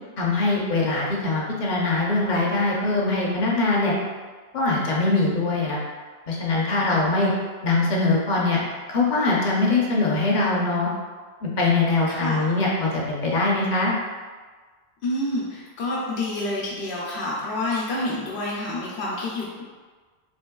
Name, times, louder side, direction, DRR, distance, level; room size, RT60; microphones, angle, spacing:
voice 1, 0.2-4.0 4.5-5.8 6.3-7.3 7.6-8.6 8.9-10.9 11.4-13.9, left 3 dB, 50° left, -3 dB, 0.7 m, -22 dB
voice 2, 12.1-12.5 15.0-19.6, left 1 dB, 85° left, -5 dB, 0.9 m, -28 dB
3.4 x 3.0 x 2.2 m, 1.4 s
omnidirectional pair, 1.1 m